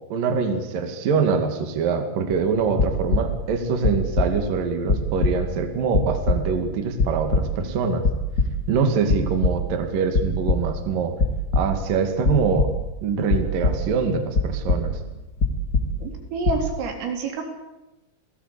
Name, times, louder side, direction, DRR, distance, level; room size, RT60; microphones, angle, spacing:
voice 1, 0.1-8.0 8.7-11.1 11.5-12.7 13.0-15.0, right 5 dB, 50° right, 6 dB, 3.3 m, -24 dB
sound 1, 2.3-3.4 3.8-4.6 4.8-6.6 6.9-7.7 8.0-8.8 9.1-9.7 10.1-10.8 11.2-11.9 12.2-12.9 13.3-14.1 14.3-15.1 15.4-16.2 16.4-16.7, left 3 dB, 35° left, 1.7 m, -23 dB
voice 2, 16.0-17.4, right 4 dB, 75° right, 3 dB, 6.3 m, -28 dB
28.5 x 17.5 x 8.4 m, 1.0 s
omnidirectional pair, 5.9 m